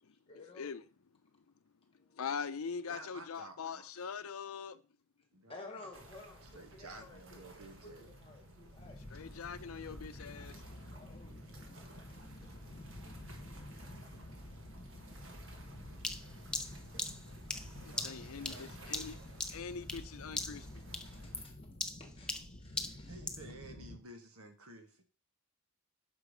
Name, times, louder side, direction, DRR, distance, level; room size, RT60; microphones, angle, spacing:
voice 1, 0.3-0.7 2.0-2.2 5.5-9.0 10.9-11.4 18.1-18.7 20.4-20.7 21.0-21.5 22.0-23.1, left 3 dB, 25° left, 1.3 m, -54 dB
voice 2, 2.2-4.8 9.1-10.5 17.8-19.2 19.5-20.7, left 6 dB, 80° left, 0.5 m, -42 dB
voice 3, 2.9-4.1 5.3-5.6 6.2-8.1 9.7-9.9 17.8-18.7 23.0-25.0, right 2 dB, 85° right, 1.4 m, -53 dB
sound 1, 5.9-21.4, right 1 dB, 60° right, 1.4 m, -56 dB
sound 2, 8.8-24.0, left 1 dB, 45° left, 1.1 m, -50 dB
sound 3, 16.0-20.1 20.4-20.7 20.9-23.5, left 2 dB, 5° left, 0.4 m, -40 dB
6.1 x 4.9 x 5.0 m
head